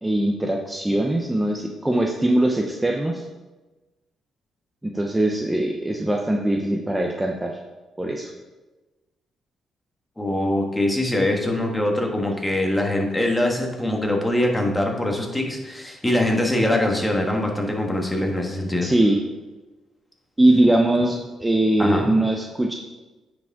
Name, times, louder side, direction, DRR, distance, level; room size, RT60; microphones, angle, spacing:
voice 1, 0.0-3.3 4.8-7.6 8.0-8.3 18.8-19.2 20.4-22.7, right 1 dB, 10° right, 2 dB, 0.7 m, -21 dB
voice 2, 10.2-18.9 21.8-22.1, left 1 dB, 10° left, 1 dB, 1.5 m, -23 dB
9.4 x 5.1 x 3.6 m, 1.2 s
cardioid pair, 90°, 0 cm